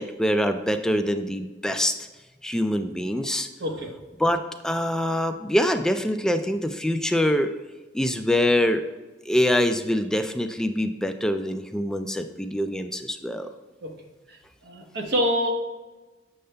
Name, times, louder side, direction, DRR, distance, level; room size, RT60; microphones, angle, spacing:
voice 1, 0.0-1.9 2.4-3.5 4.2-7.5 7.9-8.8 9.3-13.5, left 1 dB, 5° left, 7 dB, 0.3 m, -24 dB
voice 2, 14.6-15.5, equal, 65° right, 2 dB, 1.0 m, -25 dB
6.6 x 6.5 x 2.2 m, 1.2 s
head